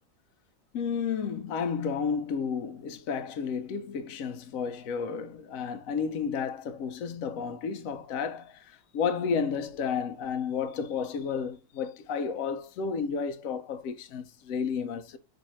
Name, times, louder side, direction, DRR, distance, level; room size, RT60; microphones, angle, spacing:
voice 1, 0.7-8.7 8.9-15.2, left 6 dB, 75° left, 1.0 m, -32 dB
4.6 x 2.6 x 3.0 m
omnidirectional pair, 1.5 m